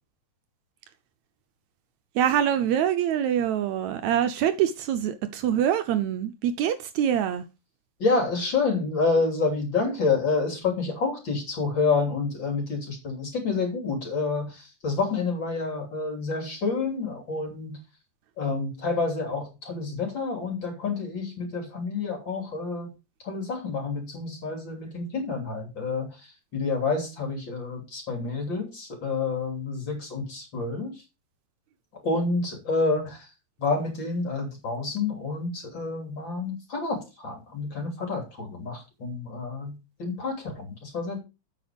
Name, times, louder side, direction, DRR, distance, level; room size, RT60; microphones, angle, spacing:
voice 1, 2.2-7.4, right 10 dB, 75° right, 1.9 m, -25 dB
voice 2, 8.0-17.8 18.4-22.9 23.2-26.2 26.5-30.9 32.0-33.3 33.6-41.2, left 4 dB, 40° left, 3.5 m, -28 dB
8.6 x 6.4 x 5.1 m
omnidirectional pair, 3.5 m